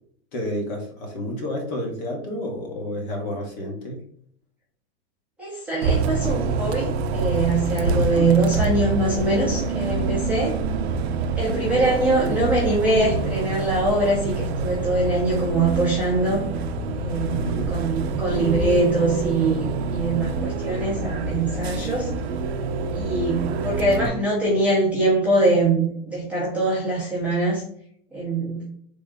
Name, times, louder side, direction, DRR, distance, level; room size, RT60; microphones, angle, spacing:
voice 1, 0.3-4.0 7.9-8.3 17.3-17.7 23.8-24.2, equal, 45° left, 1 dB, 0.9 m, -30 dB
voice 2, 5.4-10.6 11.4-16.4 17.0-22.1 22.9-27.6 28.1-28.6, right 2 dB, 5° right, -9 dB, 0.6 m, -23 dB
Bus, 5.8-24.1, right 4 dB, 85° right, 0.5 m, -26 dB
3.5 x 2.0 x 3.4 m, 0.65 s
supercardioid pair, 170°, 31 cm